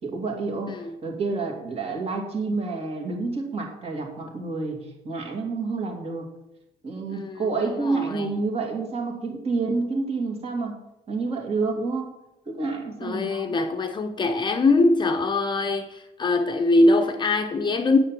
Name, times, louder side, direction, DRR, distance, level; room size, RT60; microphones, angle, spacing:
voice 1, 0.0-0.8 1.0-6.3 6.8-10.8 11.1-12.1 12.5-13.6, right 3 dB, 35° right, 2.7 m, -29 dB
voice 2, 7.1-8.3 13.0-18.0, left 2 dB, 25° left, 0.9 m, -23 dB
9.7 x 7.8 x 7.6 m
cardioid pair, 165°, 17 cm